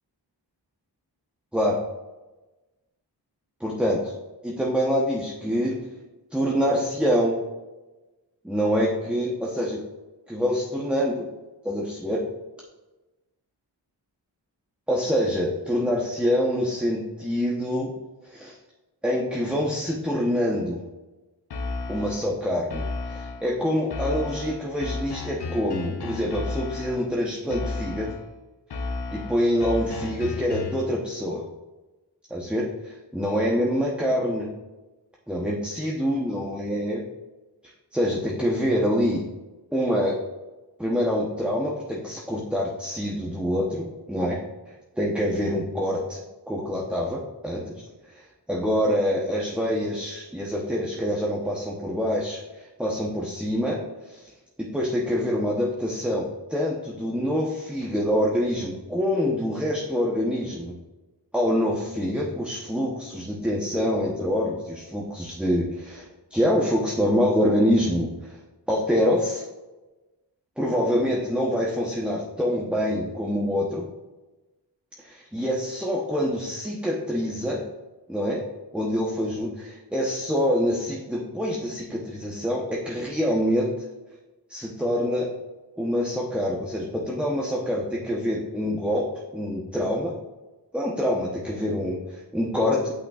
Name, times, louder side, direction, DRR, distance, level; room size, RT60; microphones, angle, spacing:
voice 1, 3.6-4.1 4.4-5.8 6.3-7.4 8.4-9.8 10.3-11.3 11.6-12.2 14.9-17.9 18.3-18.6 19.0-20.8 21.9-28.1 29.1-31.4 32.3-34.5 35.3-37.0 37.9-39.2 39.7-40.2 40.8-44.4 45.0-47.8 48.1-48.2 48.5-54.3 54.6-60.8 61.3-68.4 68.7-69.4 70.6-73.9 75.0-77.6 78.1-78.4 78.7-83.7 84.5-85.3 85.8-90.2 90.7-92.9, equal, 5° right, -3 dB, 0.9 m, -26 dB
sound 1, 21.5-22.3 22.7-23.5 23.9-27.1 27.5-28.3 28.7-30.9, left 3 dB, 65° left, 0.9 m, -33 dB
9.0 x 5.7 x 2.4 m, 1.1 s
wide cardioid pair, 90°, 43 cm